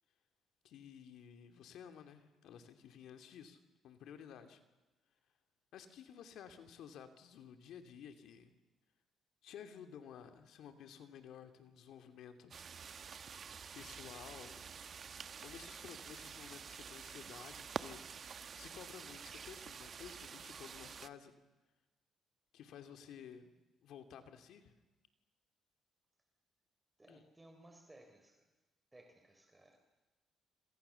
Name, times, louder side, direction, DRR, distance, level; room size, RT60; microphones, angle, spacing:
voice 1, 0.6-4.6 5.7-8.5 9.4-12.6 13.7-14.7 15.4-18.0 18.6-21.3 22.5-24.7 27.1-27.2, left 8 dB, 80° left, 8 dB, 2.8 m, -54 dB
sound 1, 12.5-21.1, right 6 dB, 50° right, 1.1 m, -48 dB
voice 2, 27.0-28.5 28.9-29.8, right 1 dB, 15° right, 4 dB, 4.1 m, -61 dB
27.0 x 27.0 x 7.1 m, 1.1 s
cardioid pair, 90°, 0 cm